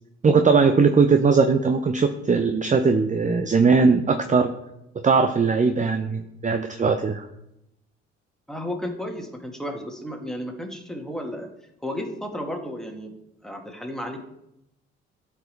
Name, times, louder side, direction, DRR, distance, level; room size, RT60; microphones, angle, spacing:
voice 1, 0.2-4.5 5.0-7.3, right 4 dB, 25° right, 7 dB, 0.7 m, -19 dB
voice 2, 8.5-11.5 11.8-13.1 13.4-14.2, left 1 dB, ahead, 2 dB, 2.0 m, -33 dB
13.0 x 4.9 x 3.4 m, 0.83 s
hypercardioid pair, 50°, 32 cm